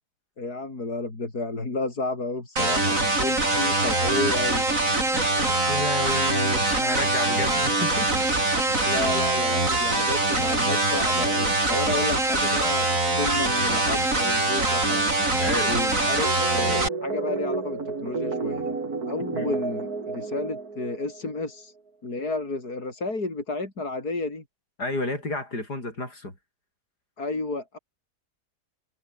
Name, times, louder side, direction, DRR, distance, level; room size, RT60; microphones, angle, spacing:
voice 1, 0.4-4.7 8.8-15.1 16.0-18.8 19.1-21.7 22.0-24.4 27.2-27.8, left 3 dB, 70° left, 5.3 m, -32 dB
sound 1, 2.6-16.9, right 2 dB, 55° right, 6.0 m, -23 dB
voice 2, 5.5-8.2 15.4-16.0 19.3-19.5 24.8-26.3, left 2 dB, 90° left, 8.3 m, -31 dB
sound 2, 16.2-21.4, right 4 dB, 70° right, 3.8 m, -31 dB
omnidirectional pair, 1.7 m